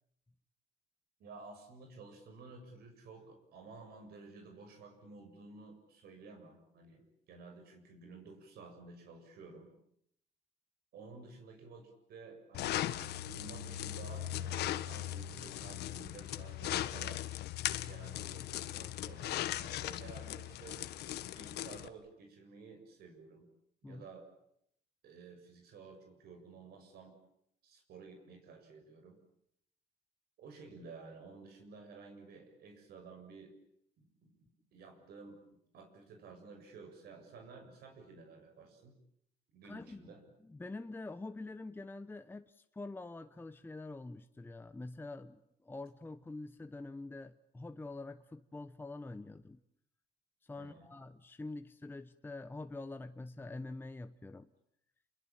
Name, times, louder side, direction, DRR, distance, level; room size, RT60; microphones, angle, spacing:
voice 1, 1.2-9.8 10.9-12.9 13.2-17.2 17.9-20.8 21.3-23.5 23.8-24.3 25.0-27.2 27.6-29.2 30.4-33.5 34.0-34.3 34.7-35.4 35.7-39.0 39.5-40.2 50.6-50.9, right 4 dB, 70° right, 5 dB, 7.2 m, -53 dB
sound 1, 12.5-21.9, left 13 dB, 75° left, 1.5 m, -38 dB
voice 2, 39.6-40.1 40.4-49.6 50.4-54.5, left 2 dB, 10° left, 10 dB, 1.0 m, -46 dB
29.5 x 22.0 x 9.0 m, 0.73 s
cardioid pair, 110°, 17 cm